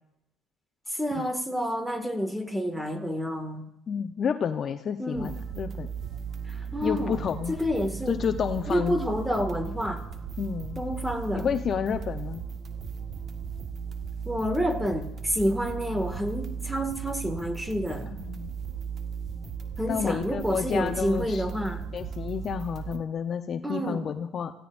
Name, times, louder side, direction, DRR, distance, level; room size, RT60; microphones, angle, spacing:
voice 1, 0.9-3.6 5.0-5.3 6.5-7.2 7.5-8.2 8.7-10.0 10.8-11.5 14.3-18.1 19.8-21.9 23.6-24.1, equal, 5° right, 6 dB, 2.1 m, -29 dB
voice 2, 3.9-5.9 6.8-7.6 8.1-9.0 10.4-10.8 11.3-12.4 18.2-18.5 19.9-21.4 21.9-24.5, left 7 dB, 45° left, 7 dB, 0.9 m, -30 dB
sound 1, 5.1-23.0, right 6 dB, 45° right, 1.5 m, -36 dB
29.0 x 16.5 x 2.6 m, 0.88 s
supercardioid pair, 85°, 0 cm